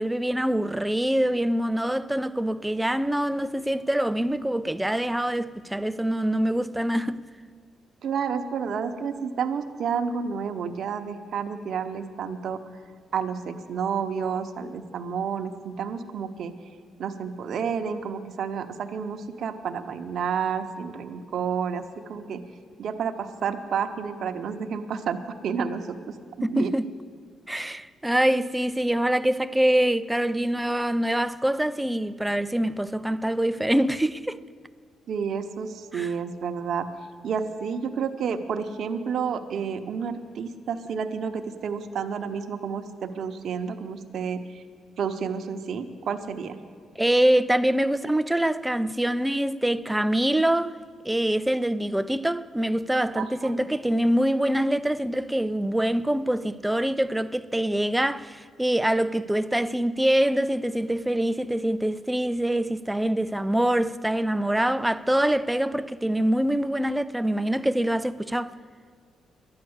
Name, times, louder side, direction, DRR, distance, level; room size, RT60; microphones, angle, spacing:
voice 1, 0.0-7.2 26.4-26.8 27.5-34.4 35.9-36.1 47.0-50.8 51.0-68.6, right 1 dB, 5° right, 0.4 m, -24 dB
voice 2, 8.0-12.6 13.1-16.5 17.0-22.4 22.8-25.2 25.4-26.1 26.5-26.7 35.1-36.9 37.2-44.6 45.0-46.6 53.1-53.6, right 6 dB, 65° right, 0.9 m, -30 dB
12.0 x 9.7 x 7.9 m
cardioid pair, 90°, 0 cm